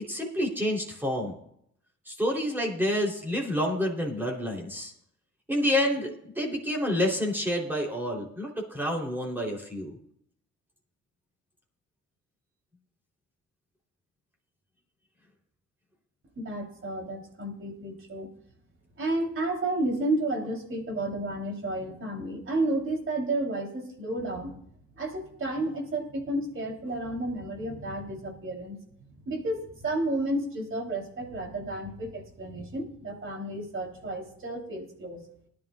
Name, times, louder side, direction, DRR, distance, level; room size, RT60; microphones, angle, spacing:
voice 1, 0.1-1.4 2.1-4.9 5.5-10.0, left 1 dB, 5° right, -1 dB, 3.7 m, -28 dB
voice 2, 16.4-18.3 19.0-24.5 25.0-28.8 29.3-35.2, right 1 dB, 45° right, 2 dB, 3.7 m, -31 dB
19.0 x 11.5 x 2.5 m, 0.70 s
cardioid pair, 90°, 30 cm